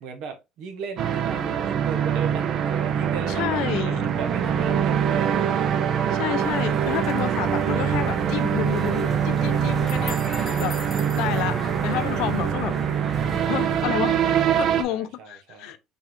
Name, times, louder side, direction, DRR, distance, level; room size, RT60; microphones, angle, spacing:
voice 1, 0.0-5.4 13.3-13.8 14.4-15.7, right 6 dB, 70° right, 0.9 m, -37 dB
sound 1, 1.0-14.8, right 8 dB, 45° right, 0.4 m, -24 dB
voice 2, 3.3-4.1 6.1-10.2 10.6-10.8 11.1-12.8 13.5-15.8, left 13 dB, 70° left, 0.4 m, -30 dB
sound 2, 6.4-12.5, right 3 dB, 30° right, 0.9 m, -39 dB
sound 3, 8.6-13.8, left 1 dB, 5° left, 1.1 m, -37 dB
3.9 x 3.6 x 3.0 m
cardioid pair, 150°, 0 cm